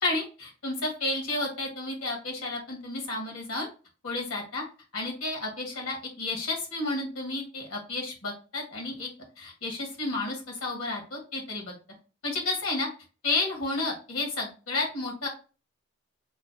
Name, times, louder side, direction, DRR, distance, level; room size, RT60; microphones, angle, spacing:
voice 1, 0.0-3.7 4.0-4.6 4.9-9.1 9.4-11.7 12.2-12.9 13.2-15.3, left 2 dB, 80° left, 0 dB, 1.4 m, -31 dB
3.1 x 2.1 x 4.0 m, 0.35 s
head